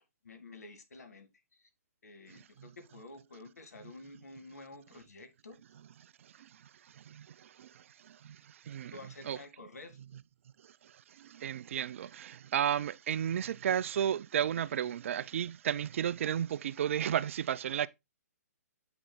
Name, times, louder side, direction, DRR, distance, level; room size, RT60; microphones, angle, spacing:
voice 1, 0.2-1.7 2.0-5.6 8.9-10.0, left 2 dB, 75° left, 1.9 m, -51 dB
voice 2, 11.2-17.9, right 9 dB, 50° right, 0.4 m, -32 dB
8.2 x 6.1 x 2.2 m
figure-of-eight pair, 125°, 9 cm